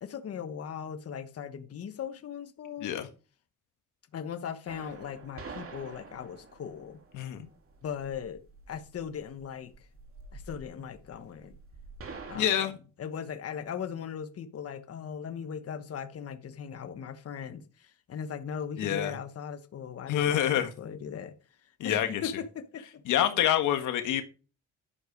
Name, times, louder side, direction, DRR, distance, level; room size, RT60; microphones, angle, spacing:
voice 1, 0.0-2.9 4.1-7.0 7.8-9.9 10.3-11.5 12.3-12.7 13.0-21.3 21.6-23.2, left 7 dB, 50° left, 1.3 m, -39 dB
sound 1, 4.7-12.5, right 4 dB, 45° right, 2.6 m, -47 dB
voice 2, 7.1-7.5 12.3-12.7 18.8-19.1 20.1-20.7 21.8-22.1 23.1-24.2, left 10 dB, 85° left, 1.5 m, -26 dB
11.5 x 6.7 x 5.1 m
cardioid pair, 90°, 30 cm